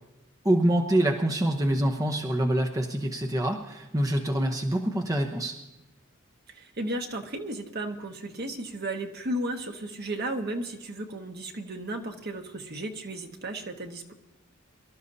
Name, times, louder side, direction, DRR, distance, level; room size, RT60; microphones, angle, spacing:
voice 1, 0.4-5.6, right 1 dB, 15° right, 2 dB, 0.9 m, -25 dB
voice 2, 6.5-14.1, right 1 dB, 50° right, 4 dB, 1.4 m, -34 dB
24.5 x 13.0 x 2.7 m, 1.0 s
head